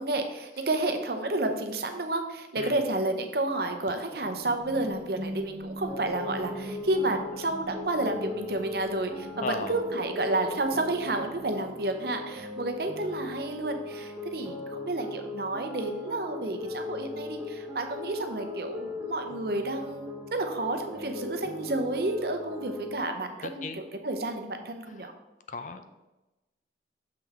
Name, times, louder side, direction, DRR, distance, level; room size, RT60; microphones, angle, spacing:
voice 1, 0.0-23.7 24.0-25.1, right 2 dB, 60° right, 6 dB, 0.8 m, -30 dB
sound 1, 4.2-12.0, right 1 dB, 85° right, 0.9 m, -43 dB
sound 2, 5.9-23.0, left 3 dB, 15° right, 0.8 m, -39 dB
voice 2, 9.4-9.8 23.4-23.8 24.9-25.1 25.5-25.8, left 3 dB, 45° left, 9 dB, 0.5 m, -36 dB
6.7 x 5.8 x 3.5 m, 1.0 s
head